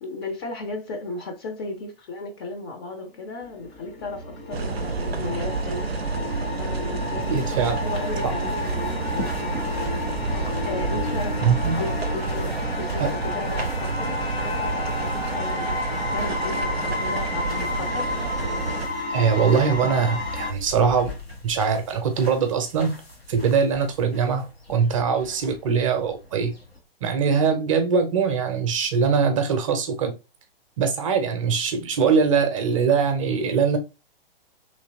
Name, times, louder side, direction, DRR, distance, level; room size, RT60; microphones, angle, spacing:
voice 1, 0.0-6.0 6.6-9.7 10.3-11.4 11.7-18.1, left 3 dB, 25° left, 0.5 m, -35 dB
sound 1, 3.5-20.5, left 2 dB, 65° left, 1.7 m, -31 dB
sound 2, 4.5-18.9, right 4 dB, 85° right, 0.5 m, -29 dB
sound 3, 7.2-26.8, left 2 dB, 90° left, 1.0 m, -41 dB
voice 2, 7.3-7.8 8.2-8.3 11.4-11.8 13.0-13.1 19.1-21.1 21.4-22.9 23.3-26.5 27.0-30.1 30.8-33.8, right 6 dB, 35° right, 0.5 m, -22 dB
3.2 x 2.7 x 2.5 m
figure-of-eight pair, 115°, 30 cm